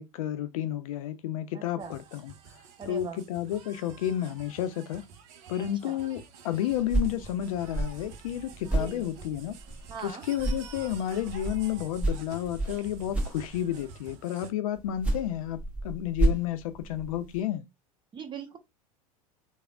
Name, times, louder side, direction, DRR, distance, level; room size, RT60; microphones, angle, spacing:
voice 1, 0.0-2.3 2.9-5.1 5.5-9.6 10.0-15.6 15.8-17.6, left 11 dB, 65° left, 0.5 m, -31 dB
voice 2, 1.5-2.0 2.8-3.2 5.6-6.0 8.7-9.1 9.9-10.2 18.1-18.6, right 5 dB, 25° right, 0.8 m, -41 dB
sound 1, 1.8-14.5, right 6 dB, 60° right, 0.6 m, -49 dB
sound 2, 6.7-10.1 10.4-13.9 14.8-17.4, right 2 dB, 5° right, 1.2 m, -32 dB
3.4 x 2.0 x 2.3 m
hypercardioid pair, 80°, 19 cm